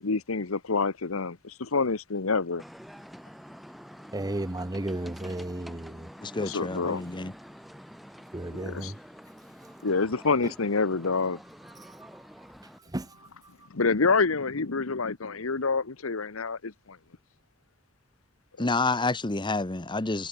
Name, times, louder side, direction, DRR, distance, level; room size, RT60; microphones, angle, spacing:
voice 1, 0.0-2.6 6.4-7.0 8.5-8.9 9.8-11.4 13.7-17.0 18.6-18.7, left 4 dB, 85° left, 1.1 m, -27 dB
sound 1, 2.6-12.8, equal, ahead, 2.5 m, -47 dB
voice 2, 4.1-6.1 8.3-9.0 10.4-10.5 11.7-12.2 12.8-13.7, right 1 dB, 20° right, 0.9 m, -35 dB
voice 3, 6.2-7.3 18.6-20.3, left 3 dB, 25° left, 1.0 m, -29 dB
head